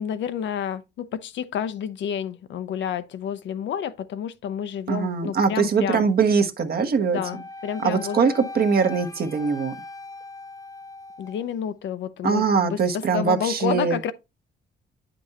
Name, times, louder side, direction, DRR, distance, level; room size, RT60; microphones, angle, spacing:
voice 1, 0.0-6.0 7.0-8.2 11.2-14.1, left 8 dB, 65° left, 0.6 m, -30 dB
voice 2, 4.9-7.2 7.8-9.7 12.2-14.0, right 5 dB, 50° right, 1.1 m, -22 dB
Wind instrument woodwind instrument, 7.2-11.4, left 2 dB, 15° left, 0.6 m, -39 dB
8.6 x 5.2 x 2.8 m
cardioid pair, 90°, 20 cm